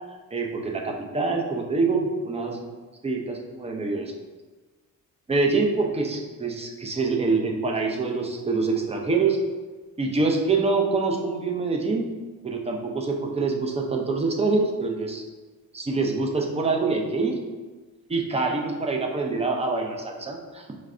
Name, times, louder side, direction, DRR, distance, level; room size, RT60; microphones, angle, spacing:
voice 1, 0.3-2.6 3.0-4.1 5.3-9.4 10.0-12.1 12.4-15.2 15.7-17.3 18.1-20.6, right 3 dB, 20° right, 1 dB, 0.5 m, -25 dB
4.6 x 3.2 x 2.5 m, 1.3 s
cardioid pair, 105°, 33 cm